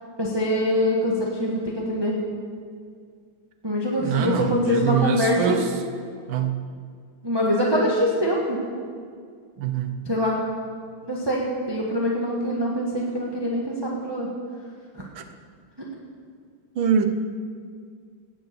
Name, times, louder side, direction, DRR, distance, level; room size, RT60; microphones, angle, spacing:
voice 1, 0.2-2.2 3.6-5.6 7.2-8.6 10.1-10.3 11.0-11.4 11.7-14.3, equal, 15° right, -3 dB, 1.5 m, -24 dB
voice 2, 4.0-5.8 6.3-6.6 9.6-10.0 15.1-15.2 16.7-17.1, right 7 dB, 75° right, 7 dB, 1.7 m, -24 dB
17.5 x 8.0 x 7.0 m, 2.1 s
omnidirectional pair, 2.2 m